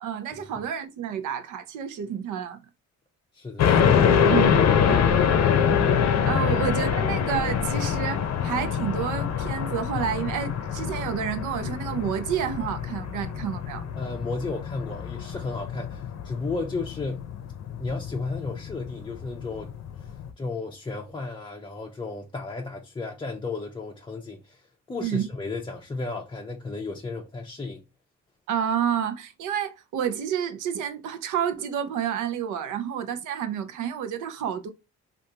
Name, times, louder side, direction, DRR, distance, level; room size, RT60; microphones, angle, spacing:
voice 1, 0.0-2.6 4.3-5.1 6.2-13.8 25.0-25.3 28.5-34.7, right 8 dB, 80° right, 0.6 m, -29 dB
voice 2, 3.3-4.0 6.5-6.6 14.0-17.3 17.8-19.7 20.0-20.1 20.4-24.6 24.9-27.8, left 3 dB, 15° left, 0.5 m, -34 dB
sound 1, 3.6-20.3, left 7 dB, 60° left, 0.6 m, -25 dB
3.5 x 2.5 x 2.7 m
cardioid pair, 90°, 30 cm